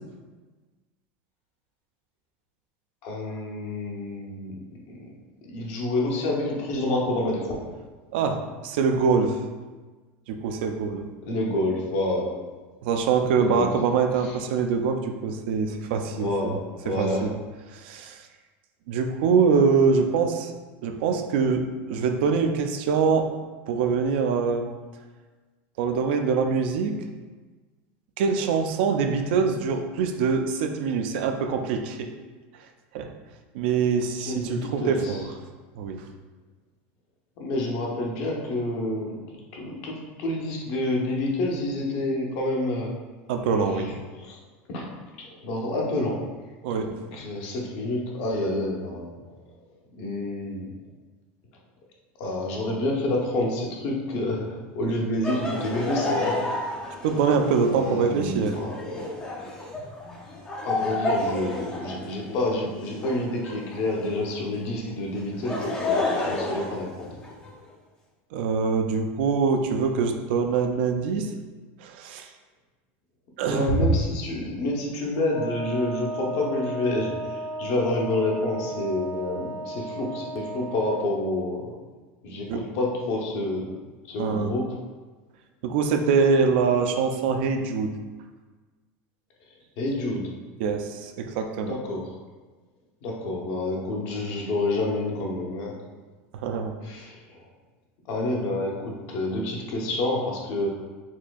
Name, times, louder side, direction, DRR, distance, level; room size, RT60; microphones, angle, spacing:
voice 1, 3.0-4.6 4.9-5.0 5.4-7.6 11.3-12.3 13.3-13.7 14.1-14.4 16.1-17.3 34.3-35.2 37.4-42.9 43.7-44.4 44.7-44.9 45.2-46.2 46.7-49.2 49.9-50.7 52.2-56.4 57.0-57.1 57.7-59.0 60.6-67.1 73.4-81.7 82.2-83.7 84.1-84.6 89.8-90.3 91.7-92.2 93.0-95.7 96.8-97.5 98.1-100.7, left 1 dB, 45° left, -1 dB, 0.7 m, -28 dB
voice 2, 8.1-9.4 10.3-11.0 12.8-16.5 16.9-17.3 17.7-18.3 18.9-20.5 20.8-23.3 23.7-24.7 25.8-27.0 28.2-32.1 32.9-33.1 33.5-35.3 35.8-36.0 43.3-44.0 46.6-46.9 57.0-58.6 68.3-71.3 71.8-72.3 73.4-73.8 82.5-82.6 84.2-84.5 85.6-87.9 90.6-91.8 96.3-96.7, right 5 dB, 65° right, 5 dB, 0.3 m, -24 dB
Laughter, 55.2-64.3 65.2-67.5, left 2 dB, 10° left, 0.4 m, -31 dB
Wind instrument woodwind instrument, 75.3-81.0, right 1 dB, 85° left, 0.8 m, -34 dB
4.3 x 2.6 x 2.3 m, 1.3 s
supercardioid pair, 170°, 6 cm